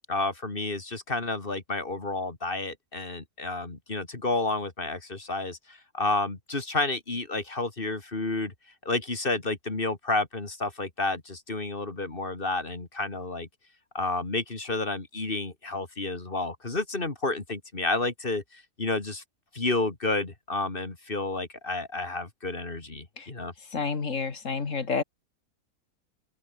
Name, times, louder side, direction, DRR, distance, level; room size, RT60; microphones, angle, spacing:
voice 1, 0.1-8.5 8.8-13.5 13.9-19.2 19.5-23.5, left 2 dB, 30° left, 2.7 m, -30 dB
voice 2, 23.7-25.0, left 5 dB, 50° left, 2.4 m, -29 dB
open air
omnidirectional pair, 1.8 m